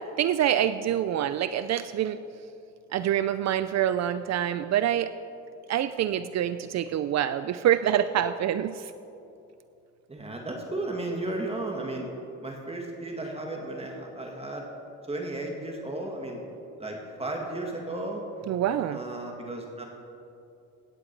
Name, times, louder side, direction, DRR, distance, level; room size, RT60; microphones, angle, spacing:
voice 1, 0.2-2.2 2.9-5.1 5.7-8.9 18.5-19.0, right 10 dB, 60° right, 12 dB, 0.5 m, -26 dB
voice 2, 10.1-12.1 12.4-14.6 15.0-16.4 16.8-18.2 18.9-19.8, right 2 dB, 20° right, 0 dB, 1.9 m, -34 dB
17.0 x 9.9 x 4.6 m, 2.6 s
cardioid pair, 90°, 30 cm